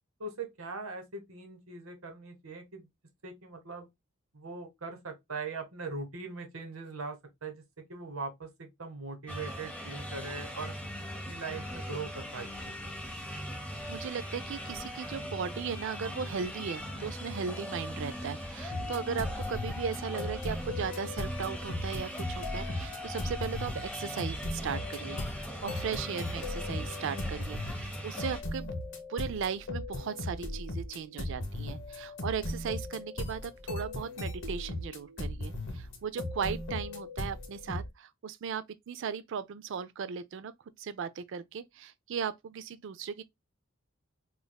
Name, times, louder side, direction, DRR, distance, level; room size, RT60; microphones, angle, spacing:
voice 1, 0.2-2.9 3.2-3.9 4.3-7.6 7.9-10.7 11.2-12.5 12.8-12.9, right 4 dB, 80° right, 1.2 m, -41 dB
sound 1, 9.3-28.4, equal, 5° left, 1.2 m, -40 dB
voice 2, 13.9-28.7 29.1-40.5 40.8-43.2, right 6 dB, 60° right, 0.4 m, -37 dB
sound 2, 18.7-37.9, left 1 dB, 60° left, 1.1 m, -38 dB
5.1 x 2.5 x 2.2 m
head